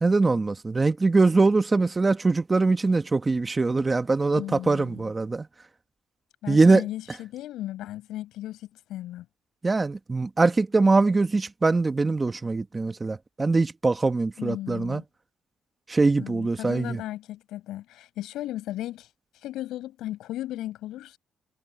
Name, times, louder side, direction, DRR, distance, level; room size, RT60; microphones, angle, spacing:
voice 1, 0.0-5.5 6.5-6.8 9.6-15.0 15.9-17.0, right 3 dB, 25° right, 1.5 m, -22 dB
voice 2, 4.4-5.1 6.4-8.6 8.9-9.3 14.4-15.0 16.2-19.1 19.4-21.2, left 14 dB, 90° left, 5.4 m, -36 dB
cardioid pair, 90°, 0 cm